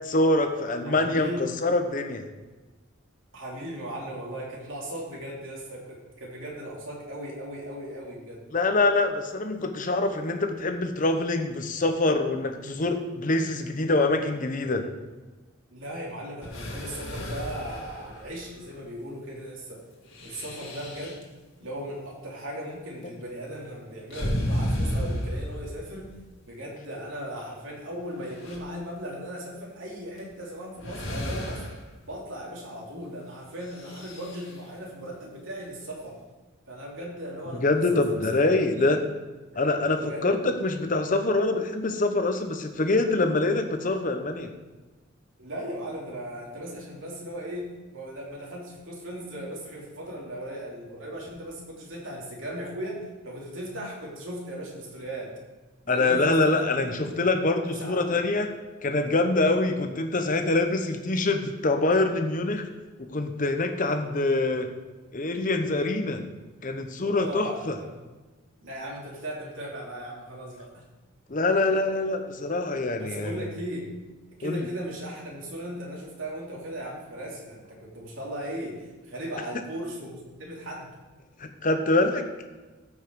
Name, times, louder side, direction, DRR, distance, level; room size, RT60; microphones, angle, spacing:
voice 1, 0.0-2.3 8.5-14.9 37.6-39.0 39.5-44.5 55.9-58.5 58.8-62.7 63.0-64.7 65.1-66.2 66.6-67.7 71.3-73.3 74.4-74.7 81.4-82.3, left 2 dB, 40° left, 6 dB, 0.9 m, -25 dB
voice 2, 0.8-1.5 3.3-8.4 15.7-19.8 20.2-21.2 21.6-26.1 26.5-31.7 32.0-36.2 36.7-38.4 38.7-38.9 39.5-39.6 40.0-40.4 45.4-55.4 55.8-57.2 57.6-58.2 67.0-68.0 68.6-70.8 72.9-73.9 74.4-80.9, equal, 70° right, -3 dB, 3.1 m, -37 dB
sound 1, 16.4-18.6 20.0-21.2 24.1-26.1 27.3-27.4 28.0-28.6 30.2-30.3 30.8-31.9 33.6-34.5, equal, 70° left, 2.2 m, -33 dB
14.5 x 5.6 x 4.7 m, 1.2 s
head